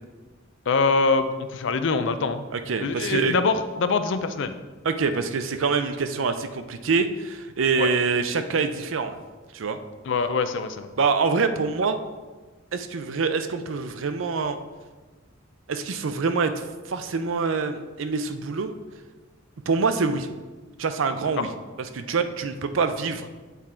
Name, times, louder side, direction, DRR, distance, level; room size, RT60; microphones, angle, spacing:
voice 1, 0.7-2.4 2.8-4.5 7.8-7.9 10.1-10.9 21.4-21.5, left 4 dB, 65° left, 10 dB, 0.5 m, -24 dB
voice 2, 2.5-3.3 4.8-9.1 9.5-9.8 11.0-12.0 12.7-14.6 15.7-18.7 19.7-20.3 20.8-21.5 21.9-23.3, right 4 dB, 75° right, 9 dB, 0.5 m, -25 dB
8.2 x 3.7 x 4.3 m, 1.3 s
head